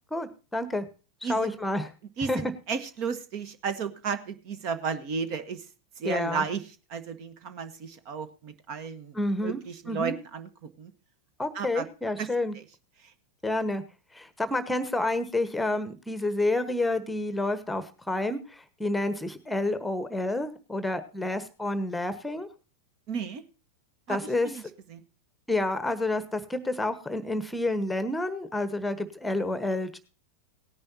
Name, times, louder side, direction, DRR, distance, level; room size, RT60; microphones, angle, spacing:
voice 1, 0.1-0.8 1.2-1.9 2.3-2.4 6.0-6.5 9.1-9.6 9.9-10.2 11.4-12.5 13.4-13.8 14.1-22.5 24.1-24.5 25.5-30.0, left 2 dB, 5° left, 13 dB, 1.2 m, -29 dB
voice 2, 1.2-1.5 2.2-5.7 6.0-6.6 6.9-10.9 11.5-11.9 12.2-12.3 12.5-12.6 13.0-13.1 23.1-23.4 24.1-24.6 24.9-25.0, right 5 dB, 40° right, 12 dB, 1.4 m, -33 dB
18.0 x 10.5 x 2.8 m, 0.34 s
figure-of-eight pair, 90°, 0 cm